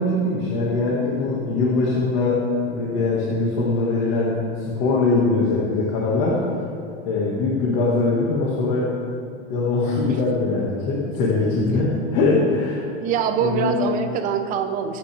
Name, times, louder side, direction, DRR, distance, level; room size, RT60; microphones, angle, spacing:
voice 1, 0.0-6.5 7.1-8.9 9.5-12.8 13.4-13.7, left 3 dB, 40° left, -5 dB, 2.0 m, -22 dB
voice 2, 13.0-15.0, right 7 dB, 25° right, 7 dB, 0.7 m, -24 dB
24.0 x 9.1 x 3.5 m, 2.5 s
supercardioid pair, 175°, 34 cm